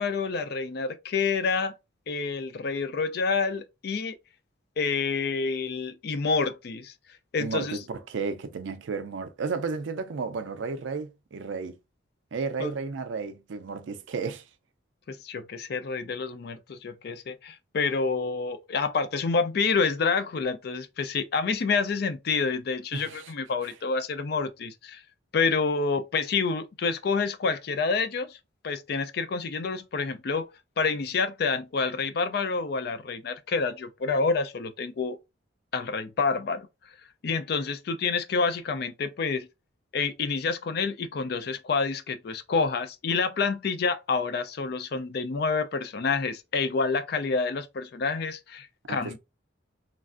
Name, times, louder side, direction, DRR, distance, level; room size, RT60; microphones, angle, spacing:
voice 1, 0.0-1.7 2.1-4.2 4.8-6.9 7.3-7.8 12.6-12.7 15.1-25.0 25.3-28.4 28.6-30.5 30.8-35.2 35.7-36.7 37.2-39.5 39.9-49.2, left 4 dB, 55° left, 0.4 m, -28 dB
voice 2, 7.4-11.8 12.3-14.4 22.9-23.3 48.9-49.2, right 4 dB, 75° right, 0.4 m, -33 dB
3.2 x 2.4 x 2.4 m
head